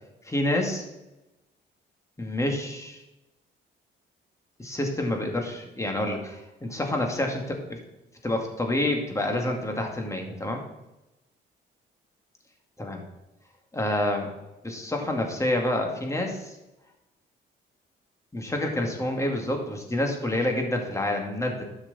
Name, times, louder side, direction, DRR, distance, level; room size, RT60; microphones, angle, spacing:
voice 1, 0.2-0.8 2.2-3.0 4.6-7.8 8.2-10.6 12.8-13.0 13.7-14.3 14.6-16.6 18.3-21.6, left 1 dB, 15° left, 2 dB, 2.2 m, -28 dB
11.5 x 6.2 x 4.2 m, 0.98 s
cardioid pair, 90°, 20 cm